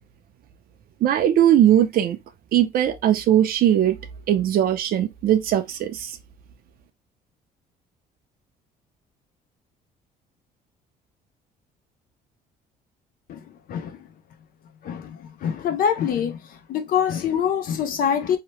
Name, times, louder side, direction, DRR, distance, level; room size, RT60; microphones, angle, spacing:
voice 1, 1.0-2.2 2.5-4.0 4.3-6.1, right 11 dB, 60° right, 0.5 m, -19 dB
voice 2, 14.8-16.4 16.7-18.4, left 8 dB, 60° left, 0.5 m, -24 dB
2.9 x 2.1 x 3.0 m
cardioid pair, 110°, 17 cm